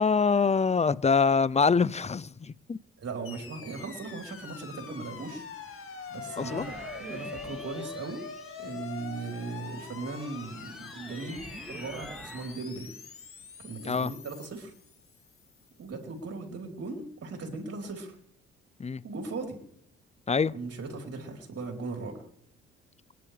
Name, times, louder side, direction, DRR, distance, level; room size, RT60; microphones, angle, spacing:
voice 1, 0.0-2.8 6.4-6.7 13.9-14.1 18.8-19.0 20.3-20.5, left 5 dB, 20° left, 0.6 m, -25 dB
voice 2, 3.0-8.2 8.6-12.9 13.6-14.7 15.8-18.2 19.0-19.6 20.5-22.3, right 3 dB, 50° right, 4.0 m, -38 dB
sound 1, 3.2-15.5, left 6 dB, 45° left, 2.1 m, -44 dB
sound 2, 6.2-9.2 9.7-12.6, equal, ahead, 2.5 m, -46 dB
29.0 x 11.0 x 3.4 m
hypercardioid pair, 55°, 30 cm